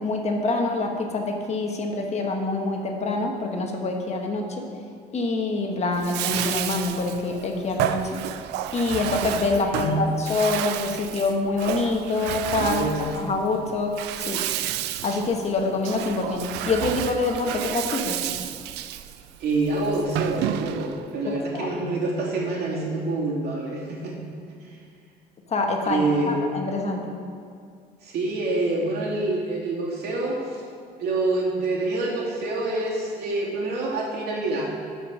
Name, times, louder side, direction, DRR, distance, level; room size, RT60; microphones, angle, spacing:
voice 1, 0.0-4.6 5.1-8.2 8.7-12.8 13.2-14.4 15.0-18.2 21.5-21.7 25.5-27.1, left 3 dB, 40° left, 2 dB, 1.4 m, -26 dB
Bathtub (filling or washing), 5.9-21.1, right 11 dB, 85° right, 0.5 m, -31 dB
voice 2, 9.7-10.0 12.7-13.1 19.4-24.2 24.6-24.8 25.8-26.4 28.0-30.6 31.0-34.7, right 2 dB, 70° right, -4 dB, 2.7 m, -26 dB
11.5 x 5.4 x 6.2 m, 2.2 s
cardioid pair, 110°, 17 cm